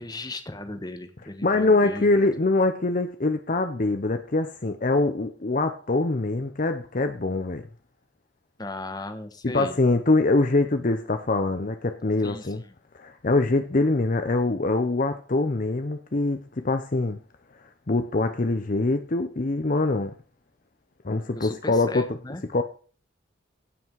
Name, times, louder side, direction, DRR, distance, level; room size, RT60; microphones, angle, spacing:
voice 1, 0.0-2.1 8.6-9.8 12.2-12.7 21.3-22.5, left 2 dB, 20° left, 1.3 m, -36 dB
voice 2, 1.4-7.6 9.5-12.6 12.9-17.2 17.9-20.1 21.0-22.1 22.5-22.6, left 2 dB, 45° left, 0.7 m, -24 dB
16.5 x 6.1 x 4.7 m
head